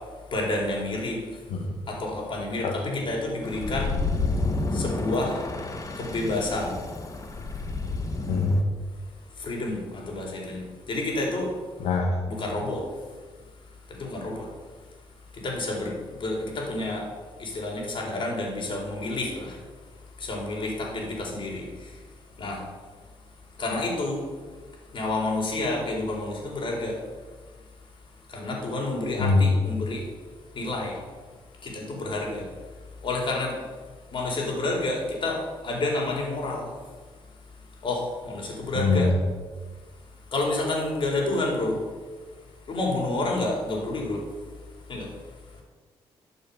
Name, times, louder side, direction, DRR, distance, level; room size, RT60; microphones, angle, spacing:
voice 1, 0.3-1.2 1.9-3.9 4.7-5.4 6.0-6.7 9.4-11.5 12.3-12.8 13.9-14.5 15.4-17.0 17.4-19.6 20.2-21.9 22.4-22.6 23.6-24.2 24.9-27.0 28.3-30.1 30.5-30.9 31.6-32.4 33.0-33.6 34.1-36.7 37.8-39.1 40.3-41.8 42.7-44.2 44.9-45.1, left 2 dB, 50° left, -2 dB, 4.4 m, -29 dB
voice 2, 2.6-3.0 8.3-8.6 11.8-12.2 29.2-29.5 38.7-39.1, left 3 dB, 80° left, -1 dB, 1.6 m, -23 dB
sound 1, 3.4-8.6, left 3 dB, 30° left, 1.7 m, -30 dB
13.0 x 6.8 x 7.3 m, 1.5 s
cardioid pair, 85°, 11 cm